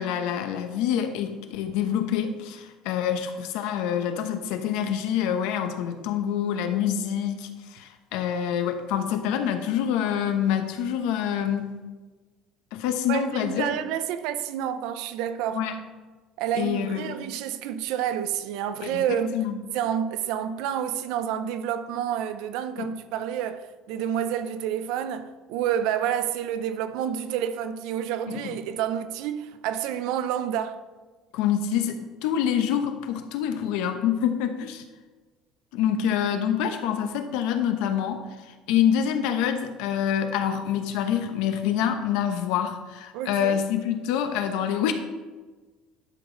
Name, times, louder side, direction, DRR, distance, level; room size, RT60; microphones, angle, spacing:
voice 1, 0.0-11.7 12.7-13.7 15.5-15.7 16.5-17.2 18.8-19.6 22.8-22.9 28.3-28.6 31.3-34.8 35.7-38.2 38.7-44.9, left 9 dB, 75° left, 0.9 m, -26 dB
voice 2, 13.1-15.6 16.4-19.4 19.7-30.8 43.1-43.6, right 9 dB, 65° right, 0.6 m, -29 dB
11.5 x 6.0 x 3.9 m
cardioid pair, 180°, 0 cm